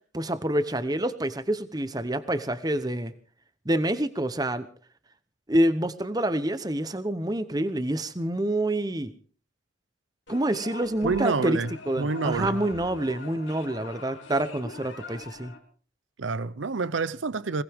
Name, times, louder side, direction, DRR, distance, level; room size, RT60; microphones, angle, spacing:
voice 1, 0.1-3.1 3.6-4.7 5.5-9.1 10.3-11.6 11.9-15.5, right 1 dB, 20° right, 0.9 m, -27 dB
sound 1, 10.3-15.6, left 3 dB, 75° left, 3.5 m, -43 dB
voice 2, 11.0-11.7 12.0-12.6 16.2-17.6, right 4 dB, 80° right, 0.7 m, -27 dB
21.5 x 18.5 x 3.6 m
head